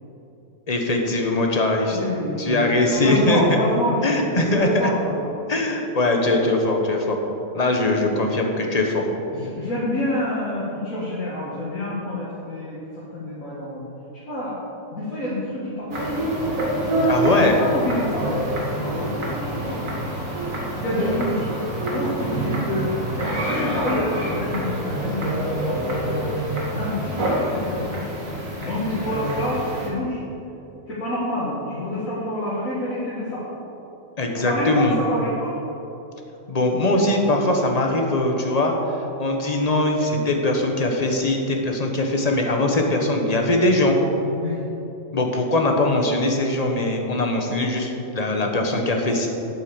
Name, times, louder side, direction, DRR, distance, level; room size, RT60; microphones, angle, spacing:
voice 1, 0.7-2.1 2.4-3.6 4.0-4.9 5.5-7.2 7.5-9.1 17.1-17.6 34.2-35.0 36.5-38.7 39.2-44.0 45.1-49.3, left 2 dB, 30° left, 2 dB, 1.3 m, -21 dB
voice 2, 1.9-5.3 9.3-14.6 14.9-16.1 17.6-19.8 20.7-21.5 21.8-26.2 26.7-28.0 28.4-30.2 30.9-33.4 34.4-35.5 44.3-44.6, left 1 dB, 85° left, -9 dB, 2.3 m, -28 dB
sound 1, 15.9-29.9, right 1 dB, 85° right, 2.3 m, -26 dB
9.0 x 8.4 x 7.1 m, 3.0 s
omnidirectional pair, 1.4 m